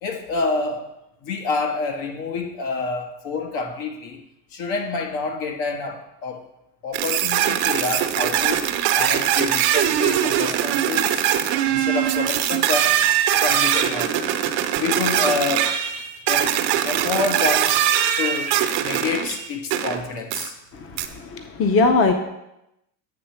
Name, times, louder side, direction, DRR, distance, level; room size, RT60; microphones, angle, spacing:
voice 1, 0.0-0.9 1.2-4.2 4.5-6.4 6.8-11.3 11.7-13.0 13.4-14.4 14.8-15.7 16.3-16.6 16.8-17.8 18.2-20.5, left 4 dB, 65° left, 2 dB, 1.4 m, -28 dB
sound 1, 6.9-20.0 20.3-20.5 21.0-21.1, right 11 dB, 75° right, 0.8 m, -21 dB
voice 2, 20.7-22.1, left 3 dB, 30° left, 6 dB, 0.7 m, -20 dB
8.5 x 3.2 x 5.8 m, 0.86 s
supercardioid pair, 95°, 49 cm